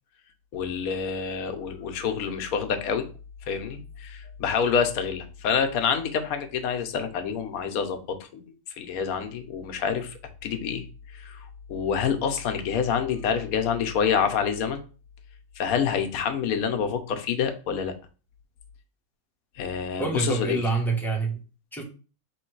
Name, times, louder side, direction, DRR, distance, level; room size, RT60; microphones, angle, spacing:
voice 1, 0.5-3.1 3.5-8.4 8.8-10.8 11.1-14.8 15.6-17.9 19.6-20.6, left 7 dB, 80° left, 7 dB, 1.1 m, -27 dB
voice 2, 20.0-21.4 21.7-21.8, right 3 dB, ahead, -1 dB, 0.7 m, -26 dB
3.1 x 3.1 x 4.5 m, 0.35 s
omnidirectional pair, 1.5 m